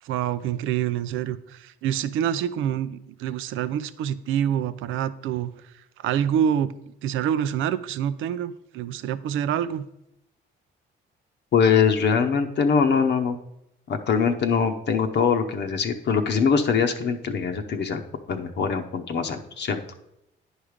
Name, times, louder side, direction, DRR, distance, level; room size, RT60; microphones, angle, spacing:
voice 1, 0.0-5.7 6.0-9.9, right 9 dB, 85° right, 14 dB, 0.5 m, -27 dB
voice 2, 11.5-13.4 13.9-18.0 18.3-19.8, left 6 dB, 60° left, 5 dB, 0.9 m, -22 dB
9.8 x 4.9 x 5.0 m, 0.83 s
cardioid pair, 90°, 20 cm